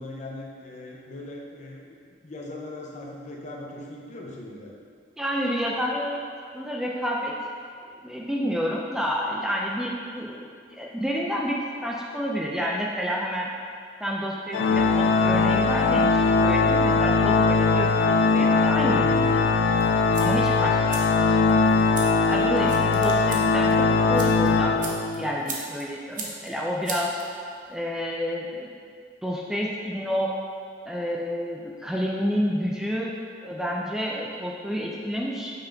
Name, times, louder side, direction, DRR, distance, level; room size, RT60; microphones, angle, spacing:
voice 1, 0.0-2.0 2.2-4.7, left 2 dB, 40° left, -1 dB, 0.8 m, -39 dB
voice 2, 5.2-6.2 6.5-7.4 8.0-11.6 11.8-13.5 14.0-19.6 20.2-21.6 22.3-24.8 25.2-27.1 27.7-28.7 29.2-30.3 30.9-33.1 33.4-35.5, equal, 5° right, -3 dB, 0.4 m, -29 dB
Organ, 14.5-25.4, left 4 dB, 70° left, 0.3 m, -21 dB
sound 1, 19.8-27.7, right 3 dB, 50° right, 0.9 m, -40 dB
5.6 x 5.3 x 3.4 m, 2.2 s
head